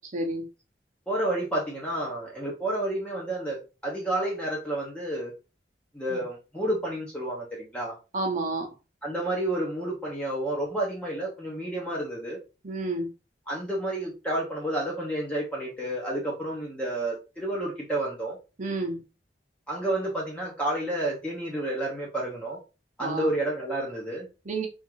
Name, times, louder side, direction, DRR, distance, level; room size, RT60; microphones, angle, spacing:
voice 1, 0.1-0.4 6.1-6.2 8.1-8.7 12.6-13.1 18.6-19.0 23.0-23.3 24.4-24.7, right 2 dB, 45° right, 2 dB, 0.7 m, -30 dB
voice 2, 1.1-5.3 5.9-7.9 9.0-12.4 13.5-18.4 19.7-22.6 23.0-24.3, right 1 dB, 5° left, -4 dB, 0.7 m, -30 dB
3.5 x 2.5 x 2.9 m, 0.30 s
head